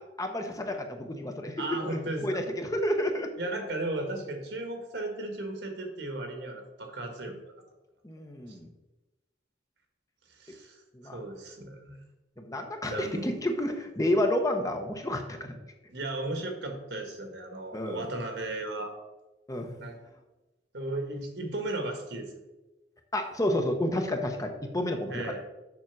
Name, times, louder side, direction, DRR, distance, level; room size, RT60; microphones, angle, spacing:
voice 1, 0.2-1.6 1.9-3.3 7.3-7.4 8.0-8.7 10.9-11.2 12.4-15.6 17.7-18.1 19.5-19.8 23.1-25.4, left 1 dB, 20° left, 4 dB, 0.8 m, -30 dB
voice 2, 1.6-2.4 3.4-7.3 10.4-10.8 11.1-12.0 12.9-13.4 15.9-18.9 19.8-20.0 20.7-22.3 25.1-25.4, right 2 dB, 75° right, 4 dB, 1.8 m, -35 dB
7.1 x 6.2 x 6.0 m, 1.0 s
head